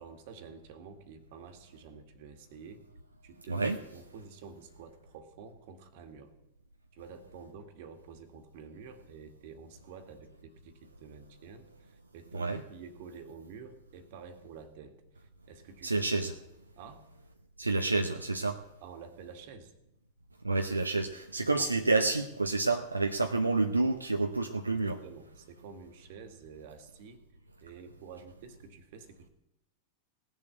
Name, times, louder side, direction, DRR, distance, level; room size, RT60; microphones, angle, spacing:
voice 1, 0.0-2.9 3.2-6.3 6.9-16.3 16.8-17.0 18.8-19.7 21.6-21.7 24.7-27.2 27.6-29.3, right 6 dB, 50° right, 7 dB, 2.0 m, -49 dB
voice 2, 15.8-16.3 17.6-18.6 20.4-25.0, right 3 dB, 80° right, 5 dB, 0.8 m, -29 dB
18.0 x 7.3 x 9.1 m, 0.87 s
figure-of-eight pair, 90°, 0 cm